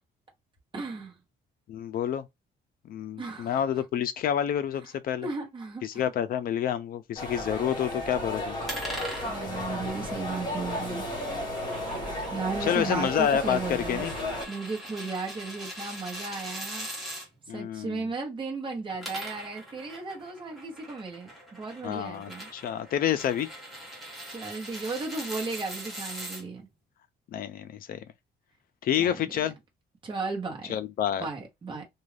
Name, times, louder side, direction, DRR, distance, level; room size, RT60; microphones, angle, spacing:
voice 1, 0.7-1.2 3.2-3.8 5.2-6.0 8.4-8.5 9.2-11.1 12.3-14.1 14.5-16.9 17.5-22.5 24.3-26.7 29.0-29.3 30.0-30.8 31.2-31.8, right 4 dB, 25° right, 0.9 m, -35 dB
voice 2, 1.7-2.2 2.9-5.3 5.8-8.6 12.6-14.1 17.5-18.1 21.8-23.5 27.3-28.0 28.8-29.6 30.7-31.3, left 9 dB, 50° left, 0.4 m, -28 dB
sound 1, 7.2-14.5, left 1 dB, 25° left, 1.2 m, -34 dB
sound 2, 8.7-17.3 18.8-26.4, equal, ahead, 1.1 m, -42 dB
2.5 x 2.3 x 3.3 m
cardioid pair, 165°, 19 cm